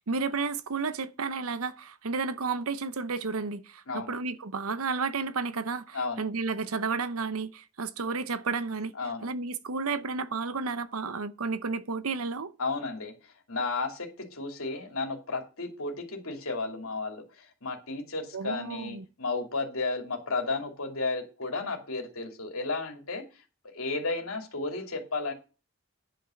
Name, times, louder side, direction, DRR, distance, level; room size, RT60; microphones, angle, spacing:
voice 1, 0.0-8.9 9.2-12.5 18.3-19.1, right 4 dB, 80° right, 0.8 m, -32 dB
voice 2, 5.9-6.2 9.0-9.3 12.6-23.2 23.6-25.3, left 3 dB, 75° left, 2.9 m, -33 dB
10.0 x 5.7 x 6.4 m
head